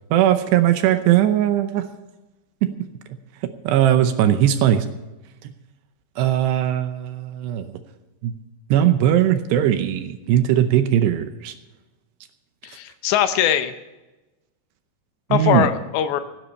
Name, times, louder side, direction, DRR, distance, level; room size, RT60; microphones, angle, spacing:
voice 1, 0.1-1.9 2.6-2.7 3.4-4.9 5.4-5.5 6.2-7.8 8.2-8.3 8.7-11.6 15.3-15.7, right 11 dB, 75° right, 9 dB, 2.7 m, -19 dB
voice 2, 12.6-13.7 15.3-16.2, left 10 dB, 80° left, 10 dB, 2.9 m, -21 dB
16.5 x 10.0 x 5.4 m, 1.1 s
omnidirectional pair, 5.4 m